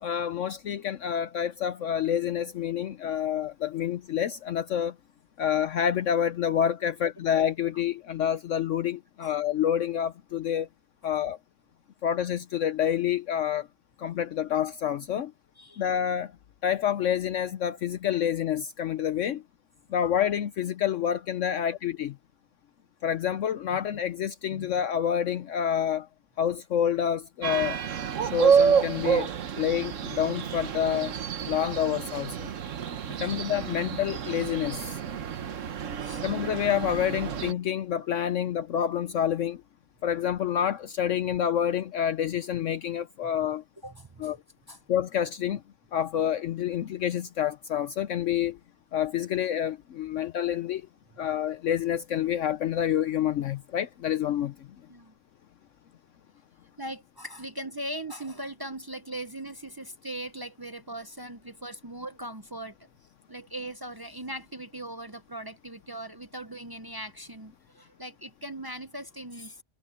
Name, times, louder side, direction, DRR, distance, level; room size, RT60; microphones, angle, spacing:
voice 1, 0.0-4.9 5.4-10.7 11.0-11.4 12.0-13.7 14.0-15.3 15.8-16.3 16.6-19.4 19.9-22.1 23.0-26.1 26.4-27.8 28.2-29.3 29.6-31.1 31.4-32.5 33.2-34.8 36.2-39.6 40.0-43.6 44.2-44.4 44.9-45.6 45.9-48.6 48.9-50.8 51.2-54.5, left 9 dB, 65° left, 0.9 m, -28 dB
sound 1, 27.4-37.5, right 7 dB, 60° right, 1.3 m, -28 dB
voice 2, 43.8-44.3 44.7-44.8 54.9-55.1 56.8-62.8 63.3-69.6, right 1 dB, 30° right, 0.4 m, -39 dB
omnidirectional pair, 1.5 m